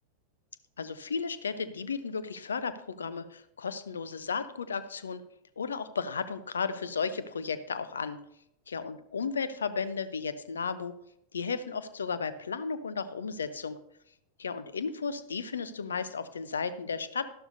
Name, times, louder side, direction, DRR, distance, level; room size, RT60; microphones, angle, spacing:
voice 1, 0.8-5.2 5.6-8.2 8.7-10.9 11.3-13.8 14.4-17.3, left 5 dB, 70° left, 14 dB, 0.6 m, -34 dB
12.0 x 11.5 x 2.7 m, 0.77 s
figure-of-eight pair, 90°, 0 cm